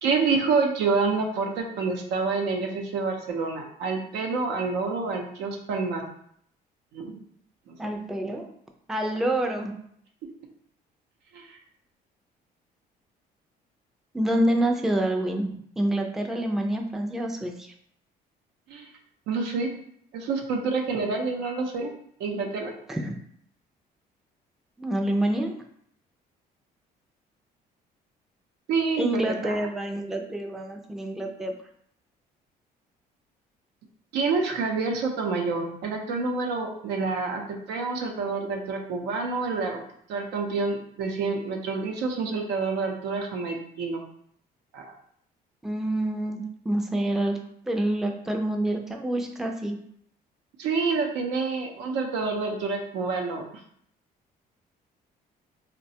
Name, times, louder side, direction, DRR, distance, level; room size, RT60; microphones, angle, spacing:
voice 1, 0.0-6.0 6.9-7.2 7.7-7.8 11.3-11.6 18.7-18.9 19.3-19.7 20.1-21.9 22.2-22.7 28.7-29.6 34.1-37.4 37.7-39.8 40.1-44.0 44.7-44.9 50.6-53.4, right 4 dB, 90° right, 2 dB, 0.6 m, -28 dB
voice 2, 7.8-8.5 8.9-9.7 14.1-17.7 22.9-23.1 24.8-25.5 29.0-31.6 45.6-47.4 47.7-49.8, right 1 dB, ahead, 2 dB, 0.4 m, -27 dB
4.0 x 2.2 x 2.7 m, 0.67 s
cardioid pair, 110°, 17 cm